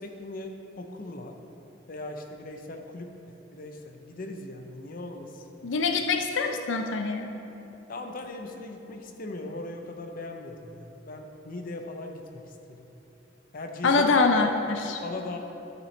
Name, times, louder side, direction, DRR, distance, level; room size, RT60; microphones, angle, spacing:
voice 1, 0.0-1.4 1.9-5.4 7.9-12.4 12.7-12.9 13.5-14.0 15.0-15.4, left 2 dB, 50° left, 4 dB, 0.6 m, -39 dB
voice 2, 5.6-7.3 13.8-15.0, left 4 dB, 90° left, 4 dB, 0.5 m, -24 dB
12.0 x 6.0 x 3.2 m, 3.0 s
head